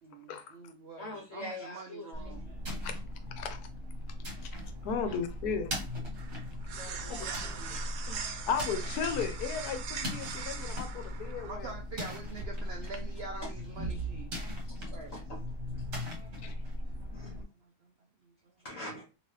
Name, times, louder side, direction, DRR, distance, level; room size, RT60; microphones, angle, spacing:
voice 1, 0.0-2.6 8.0-8.1 11.2-14.3 14.9-15.1 16.1-16.6 16.9-17.9 18.2-18.3, right 4 dB, 70° right, 0.6 m, -46 dB
voice 2, 1.0-2.3 5.0-5.2 5.4-5.5 6.7-7.8 8.1-8.2 13.4-13.5 14.6-15.4 16.1-16.6 17.1-17.4 18.6-19.0, left 1 dB, 55° left, 1.4 m, -45 dB
sound 1, 2.1-17.4, equal, 45° right, 1.2 m, -39 dB
sound 2, 4.5-13.0, right 6 dB, 85° right, 1.2 m, -42 dB
voice 3, 4.8-5.7 7.1-7.2 8.5-11.7 16.4-16.5, left 6 dB, 80° left, 1.1 m, -35 dB
3.1 x 2.8 x 3.0 m
omnidirectional pair, 1.7 m